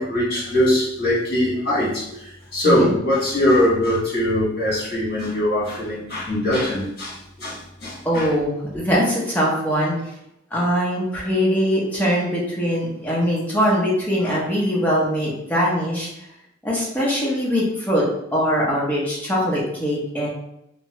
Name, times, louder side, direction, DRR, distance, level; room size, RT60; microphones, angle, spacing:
voice 1, 0.0-8.3, left 1 dB, 55° left, -7 dB, 1.4 m, -22 dB
voice 2, 2.6-2.9 8.0-10.0 10.5-16.1 16.6-18.0 18.3-20.3, equal, 10° left, -5 dB, 0.8 m, -22 dB
2.9 x 2.2 x 2.9 m, 0.80 s
head